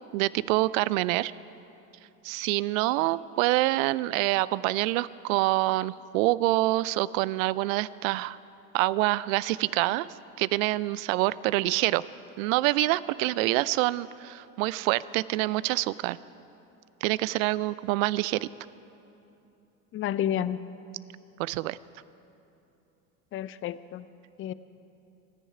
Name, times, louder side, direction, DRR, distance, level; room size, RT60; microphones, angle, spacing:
voice 1, 0.1-1.3 2.2-8.4 8.7-10.1 10.4-12.0 12.4-16.2 17.0-18.5 21.4-21.8, right 18 dB, 60° right, 19 dB, 0.5 m, -26 dB
voice 2, 19.9-20.6 23.3-24.1 24.4-24.5, left 10 dB, 30° left, 16 dB, 0.5 m, -30 dB
25.0 x 10.0 x 4.8 m, 2.8 s
hypercardioid pair, 75°, 47 cm